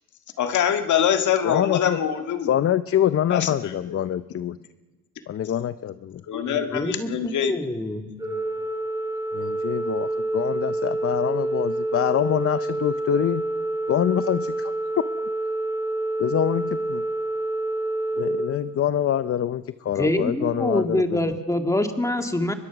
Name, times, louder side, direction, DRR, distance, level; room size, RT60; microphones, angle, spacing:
voice 1, 0.4-2.5 3.3-4.0 6.3-7.6, left 9 dB, 75° left, 6 dB, 1.8 m, -24 dB
voice 2, 1.4-2.0 2.5-4.6 5.3-6.2 9.3-13.4 13.9-14.7 16.2-17.0 18.2-21.4, left 10 dB, 50° left, 13 dB, 0.7 m, -25 dB
voice 3, 6.5-8.1 20.0-22.5, left 1 dB, 10° left, 5 dB, 2.1 m, -25 dB
Organ, 8.2-19.3, right 2 dB, 15° right, 6.9 m, -28 dB
23.0 x 22.0 x 6.1 m, 1.2 s
cardioid pair, 90°, 30 cm